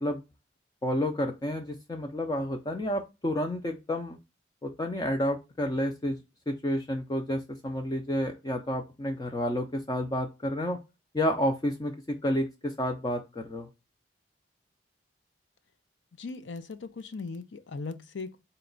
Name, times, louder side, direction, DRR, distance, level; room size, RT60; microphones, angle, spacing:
voice 1, 0.8-4.2 4.6-6.2 6.5-10.8 11.1-11.9 12.2-13.7, left 1 dB, 20° left, 0.5 m, -30 dB
voice 2, 16.2-18.4, left 4 dB, 85° left, 0.6 m, -38 dB
4.0 x 2.3 x 3.8 m
head